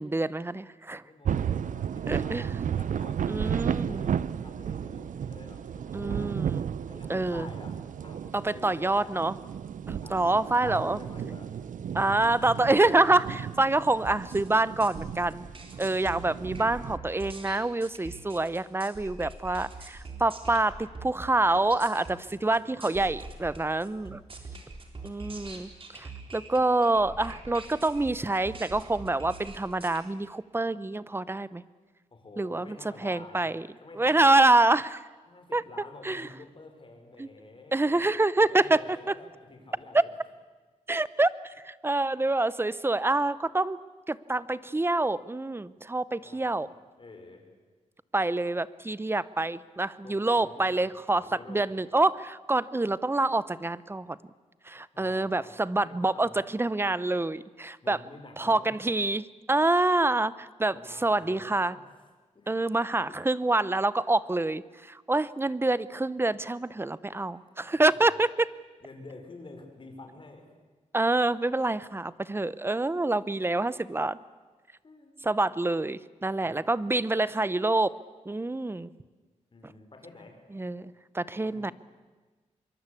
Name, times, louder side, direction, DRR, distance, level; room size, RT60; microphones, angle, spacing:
voice 1, 0.0-1.0 2.1-2.5 3.3-4.1 5.9-6.7 7.1-7.5 8.3-9.4 9.9-11.0 11.9-15.5 15.8-24.2 25.0-31.6 32.4-33.7 34.0-35.0 35.5-35.6 36.0-36.3 37.2-37.3 37.7-38.8 39.1-39.2 39.9-40.0 40.9-43.8 44.1-46.7 48.1-54.2 54.7-58.0 58.4-61.7 62.5-68.5 70.9-74.2 75.2-77.9 78.3-78.9 80.5-81.7, right 2 dB, 20° right, 18 dB, 0.8 m, -26 dB
voice 2, 1.0-6.3 6.9-9.1 10.0-11.5 22.1-23.0 32.1-33.5 33.8-34.4 35.3-38.0 38.3-40.1 46.2-46.7 47.0-47.4 50.0-50.8 51.1-51.7 54.9-55.6 55.8-56.5 57.8-58.8 60.7-61.8 62.3-62.5 63.1-63.2 67.1-68.1 68.8-70.5 74.8-75.1 76.4-76.6 79.5-80.4 81.4-81.7, left 3 dB, 40° left, 4 dB, 5.3 m, -49 dB
sound 1, 1.2-17.0, right 8 dB, 85° right, 0.7 m, -34 dB
sound 2, 14.1-30.0, right 3 dB, 45° right, 4.0 m, -44 dB
25.0 x 23.0 x 8.5 m, 1.3 s
wide cardioid pair, 100°, 13 cm